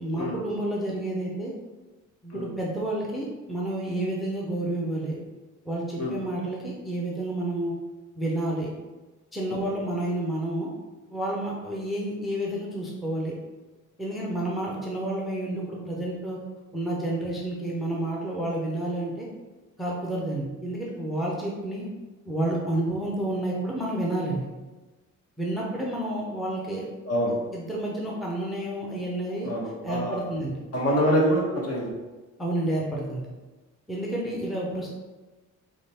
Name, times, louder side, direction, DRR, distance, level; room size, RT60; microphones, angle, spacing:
voice 1, 0.0-1.5 2.2-5.2 5.6-7.7 8.2-8.7 9.3-10.7 11.1-13.3 14.0-16.4 16.7-19.3 19.8-21.9 22.3-24.5 25.4-26.9 27.5-29.5 29.8-30.6 32.4-33.3 33.9-34.9, right 1 dB, ahead, -4 dB, 0.6 m, -30 dB
voice 2, 27.0-27.3 29.4-30.2 30.7-31.9, equal, 50° left, -2 dB, 1.2 m, -25 dB
3.7 x 3.3 x 4.2 m, 1.2 s
cardioid pair, 155°, 32 cm